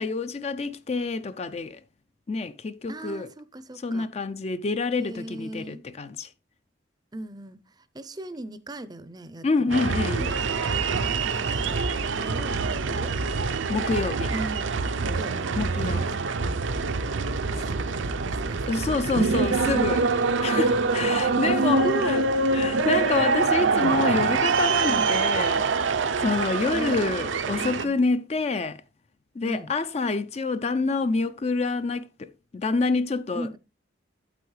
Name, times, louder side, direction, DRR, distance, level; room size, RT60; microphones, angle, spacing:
voice 1, 0.0-1.8 2.3-3.3 3.8-6.3 9.4-10.3 13.7-14.3 15.5-16.1 18.7-20.0 20.4-22.2 22.5-25.7 26.2-28.8 29.4-33.6, left 3 dB, 35° left, 0.4 m, -27 dB
voice 2, 2.9-4.1 5.0-5.8 7.1-7.6 7.9-9.8 11.1-11.9 12.2-13.1 14.3-15.5 15.8-16.1 17.4-18.8 19.0-19.1 20.9-22.2 22.8-23.0 24.8-25.2 26.7-27.1 27.6-28.0 29.4-29.7 33.3-33.6, right 1 dB, 20° right, 0.5 m, -37 dB
sound 1, 9.7-27.8, right 4 dB, 75° right, 0.6 m, -25 dB
8.5 x 8.1 x 3.2 m
head